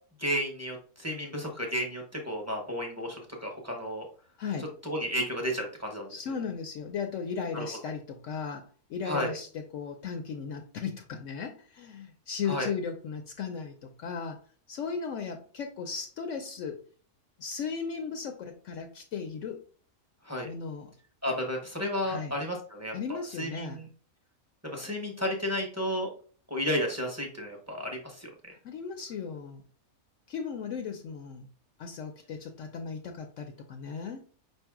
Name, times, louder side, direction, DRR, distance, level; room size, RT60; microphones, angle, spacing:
voice 1, 0.2-4.1 4.8-6.4 7.5-7.7 9.1-9.4 12.5-12.7 20.2-20.5 21.2-22.9 23.4-23.9 24.7-26.1 26.5-28.3, equal, 15° right, 1 dB, 0.8 m, -32 dB
voice 2, 4.4-4.7 6.1-14.4 14.7-16.8 17.4-19.6 20.4-20.9 22.0-22.3 22.9-23.8 28.6-29.6 30.3-31.5 31.8-34.2, left 6 dB, 70° left, 5 dB, 0.9 m, -36 dB
5.3 x 2.6 x 3.5 m, 0.42 s
omnidirectional pair, 1.5 m